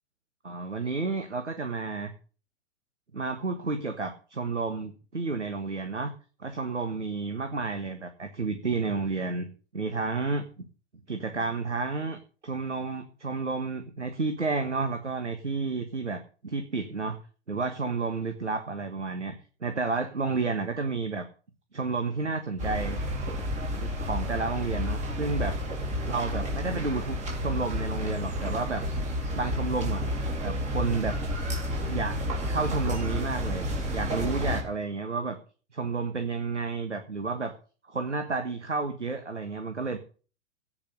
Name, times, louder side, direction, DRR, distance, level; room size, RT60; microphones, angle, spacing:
voice 1, 0.4-2.1 3.1-6.1 6.4-9.5 9.7-10.5 11.1-17.2 17.5-19.4 19.6-21.3 21.7-23.0 23.7-25.6 26.0-28.8 29.3-30.1 30.4-31.2 31.8-32.2 32.5-33.6 33.9-35.4 35.7-37.5 37.9-40.0, right 4 dB, 80° right, 7 dB, 1.6 m, -31 dB
sound 1, 22.6-34.6, left 1 dB, 20° right, 4.1 m, -31 dB
17.0 x 5.9 x 6.7 m, 0.39 s
figure-of-eight pair, 110°, 35 cm